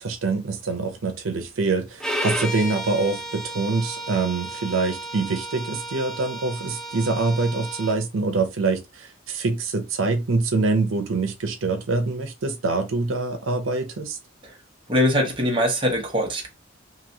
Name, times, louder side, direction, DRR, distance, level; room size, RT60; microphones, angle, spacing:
voice 1, 0.0-14.2, right 3 dB, 90° right, 0.7 m, -25 dB
Bowed string instrument, 2.0-8.0, right 1 dB, 5° left, 0.4 m, -33 dB
voice 2, 14.9-16.5, equal, 25° right, 0.9 m, -22 dB
3.0 x 2.7 x 2.7 m
head